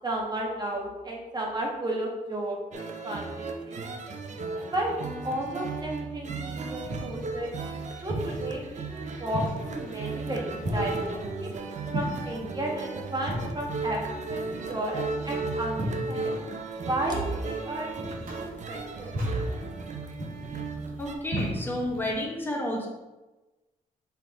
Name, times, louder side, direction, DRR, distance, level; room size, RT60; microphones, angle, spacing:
voice 1, 0.0-3.8 4.7-4.9 5.2-7.5 8.0-11.5 11.9-16.3 16.9-17.9 18.3-19.3, right 1 dB, 25° right, -1 dB, 1.6 m, -33 dB
sound 1, 2.7-21.1, right 4 dB, 50° right, 0.8 m, -35 dB
sound 2, 6.5-22.2, equal, 65° right, 2.0 m, -37 dB
voice 2, 21.0-22.9, left 1 dB, 15° left, -1 dB, 1.5 m, -31 dB
5.6 x 4.0 x 4.3 m, 1.1 s
cardioid pair, 95°, 15 cm